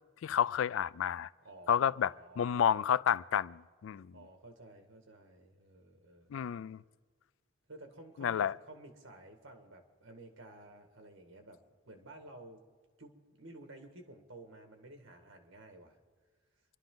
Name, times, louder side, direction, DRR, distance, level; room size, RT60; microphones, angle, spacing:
voice 1, 0.2-1.3 1.7-4.1 6.3-6.8 8.2-8.5, left 8 dB, 75° left, 0.3 m, -30 dB
voice 2, 1.4-2.7 4.1-6.4 7.7-12.6 13.0-16.0, right 2 dB, 80° right, 1.9 m, -53 dB
26.5 x 11.5 x 3.9 m
head